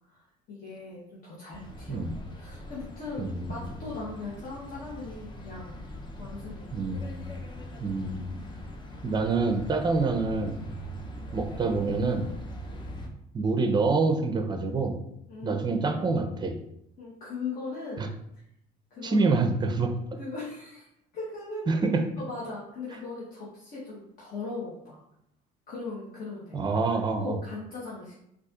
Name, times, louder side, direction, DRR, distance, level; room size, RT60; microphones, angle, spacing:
voice 1, 0.1-2.0 2.3-5.8 6.2-6.7 15.3-16.0 17.0-18.1 18.9-19.3 20.2-20.9 21.1-21.7 22.2-25.0 25.7-26.7 27.2-28.2, left 3 dB, 50° left, -6 dB, 1.0 m, -39 dB
sound 1, 1.5-13.1, equal, 25° left, 0.6 m, -42 dB
voice 2, 3.2-3.8 6.7-7.4 7.8-8.5 9.0-10.6 11.3-12.3 13.3-15.0 15.4-16.6 18.0-18.1 19.0-19.9 21.7-22.0 26.5-27.4, right 3 dB, 25° right, 6 dB, 0.5 m, -27 dB
4.1 x 2.5 x 2.4 m, 0.76 s
supercardioid pair, 95°, 18 cm